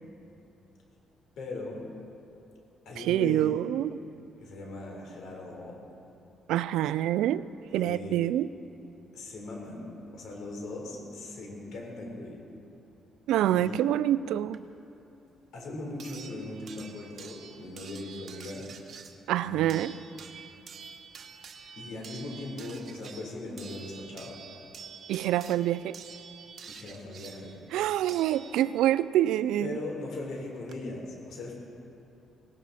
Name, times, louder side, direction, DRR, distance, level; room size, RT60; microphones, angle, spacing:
voice 1, 1.4-1.9 2.9-3.5 4.4-5.8 7.7-8.3 9.1-12.4 13.5-13.8 15.5-18.7 19.4-19.7 21.8-24.4 26.7-27.6 29.6-31.5, left 2 dB, 75° left, -1 dB, 4.1 m, -39 dB
voice 2, 3.0-3.9 6.5-7.4 7.7-8.5 13.3-14.6 19.3-19.9 25.1-26.0 27.7-29.8, right 12 dB, 90° right, 16 dB, 0.4 m, -26 dB
sound 1, 14.5-14.6 16.0-29.0 30.3-30.4 30.7-30.8, right 6 dB, 60° right, 1.1 m, -48 dB
18.0 x 18.0 x 4.2 m, 2.9 s
cardioid pair, 90°, 0 cm